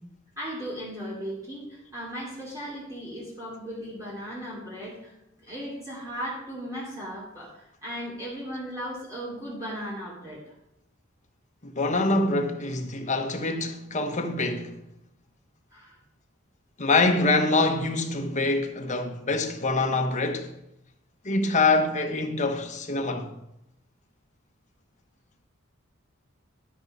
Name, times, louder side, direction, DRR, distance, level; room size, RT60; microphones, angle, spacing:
voice 1, 0.4-10.5 15.7-15.9, equal, 15° right, 2.7 m, -37 dB
voice 2, 11.6-14.8 16.8-20.5 21.2-23.3, left 3 dB, 35° left, 1.0 m, -25 dB
11.5 x 6.1 x 5.4 m
head